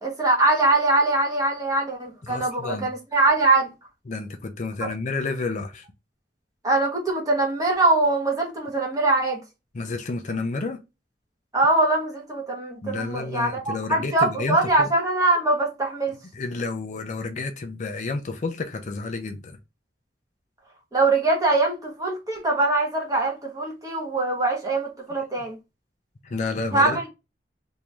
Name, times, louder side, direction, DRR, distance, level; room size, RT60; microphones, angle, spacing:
voice 1, 0.0-3.7 4.8-4.9 6.6-9.4 11.5-16.1 20.9-25.6 26.7-27.0, right 2 dB, 20° right, 1.1 m, -22 dB
voice 2, 2.3-2.9 4.1-5.8 9.7-10.8 12.8-14.9 16.3-19.5 26.3-27.0, left 3 dB, 45° left, 0.4 m, -30 dB
3.0 x 2.6 x 3.3 m
head